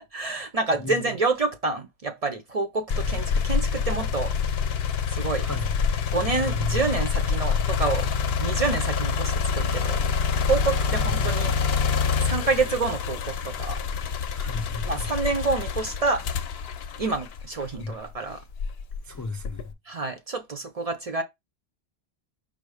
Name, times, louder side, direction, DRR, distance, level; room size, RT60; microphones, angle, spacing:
voice 1, 0.1-4.3 5.1-5.5 6.1-8.1 8.4-10.0 10.4-11.5 12.2-13.8 14.8-16.2 17.0-18.4 19.9-21.2, right 3 dB, 45° right, 0.6 m, -28 dB
sound 1, 2.9-17.9 18.5-19.7, left 6 dB, 75° left, 0.8 m, -26 dB
voice 2, 6.4-6.8 11.0-11.3 14.3-14.9 17.8-17.9 19.1-19.6, left 3 dB, 30° left, 0.3 m, -32 dB
5.2 x 2.0 x 4.7 m
omnidirectional pair, 1.1 m